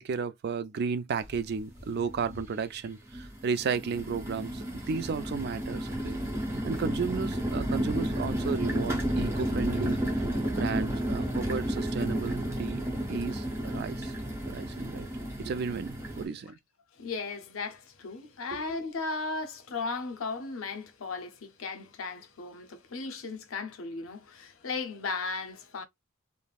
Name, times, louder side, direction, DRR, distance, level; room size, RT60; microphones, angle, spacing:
voice 1, 0.0-10.0 10.4-12.8 13.1-14.1 14.5-15.1 15.4-16.5 18.5-18.8, right 5 dB, 50° right, 0.3 m, -34 dB
sound 1, 1.2-1.3 1.8-2.4 3.1-16.2, right 1 dB, 15° right, 0.9 m, -32 dB
voice 2, 17.0-25.8, left 4 dB, 90° left, 0.6 m, -36 dB
3.3 x 2.0 x 2.3 m
head